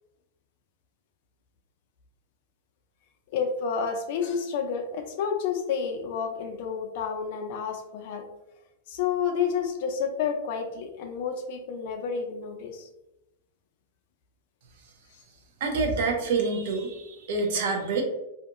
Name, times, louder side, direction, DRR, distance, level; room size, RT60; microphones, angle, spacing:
voice 1, 3.3-8.3 8.9-12.9, left 6 dB, 50° left, 4 dB, 0.4 m, -30 dB
voice 2, 15.6-18.0, right 4 dB, 60° right, 3 dB, 0.6 m, -27 dB
2.7 x 2.5 x 2.4 m, 0.89 s
supercardioid pair, 155°, 0 cm